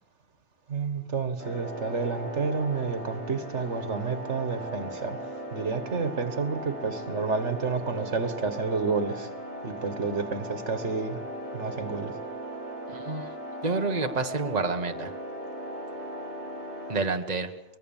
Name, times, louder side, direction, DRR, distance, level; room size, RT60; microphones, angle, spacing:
voice 1, 0.7-5.2 5.5-9.3 9.6-11.2 11.5-12.1, right 4 dB, 85° right, 10 dB, 2.0 m, -30 dB
sound 1, 1.4-17.0, equal, 70° left, 7.3 m, -38 dB
voice 2, 12.9-13.3 13.6-15.1 16.9-17.5, right 3 dB, 35° right, 5 dB, 1.6 m, -28 dB
24.0 x 21.5 x 7.3 m, 0.86 s
omnidirectional pair, 1.2 m